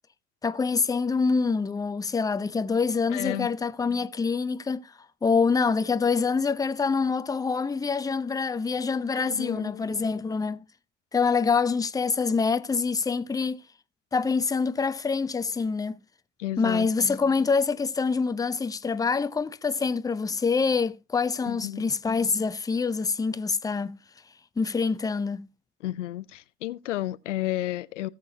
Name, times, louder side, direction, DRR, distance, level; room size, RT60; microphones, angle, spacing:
voice 1, 0.4-4.9 5.2-10.6 11.1-13.6 14.1-16.0 16.6-24.0 24.6-25.5, left 5 dB, 10° left, 0.6 m, -26 dB
voice 2, 3.1-3.5 9.2-9.9 16.4-16.9 21.4-21.9 25.8-28.1, left 15 dB, 90° left, 0.5 m, -32 dB
17.5 x 6.7 x 2.8 m
hypercardioid pair, 75°, 35 cm